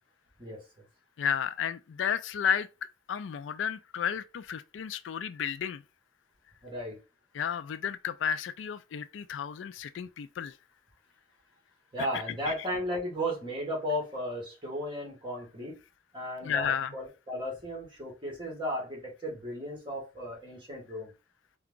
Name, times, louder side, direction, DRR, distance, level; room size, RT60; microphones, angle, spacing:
voice 1, 1.2-2.7 3.1-5.8 7.3-10.5 12.5-12.6 16.4-16.9, left 7 dB, 85° left, 0.4 m, -32 dB
voice 2, 6.6-7.0 11.9-15.8 16.1-21.1, equal, 25° right, 1.8 m, -35 dB
4.5 x 2.3 x 3.8 m
head